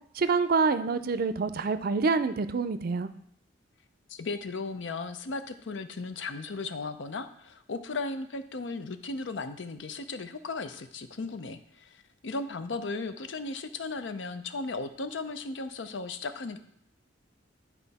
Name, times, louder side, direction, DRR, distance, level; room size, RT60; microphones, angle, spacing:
voice 1, 0.1-3.1, right 4 dB, 55° right, 12 dB, 0.4 m, -26 dB
voice 2, 4.1-16.6, left 3 dB, 85° left, 9 dB, 0.6 m, -36 dB
9.9 x 4.3 x 4.1 m, 0.70 s
head